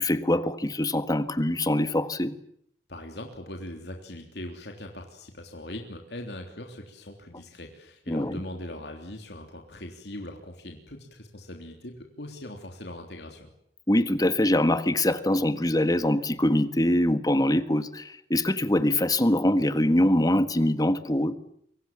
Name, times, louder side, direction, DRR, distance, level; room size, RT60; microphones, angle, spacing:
voice 1, 0.0-2.3 8.1-8.4 13.9-21.4, left 1 dB, 20° left, 11 dB, 1.6 m, -23 dB
voice 2, 2.9-13.5, left 1 dB, 70° left, 2 dB, 3.4 m, -41 dB
28.5 x 24.5 x 7.5 m, 0.69 s
head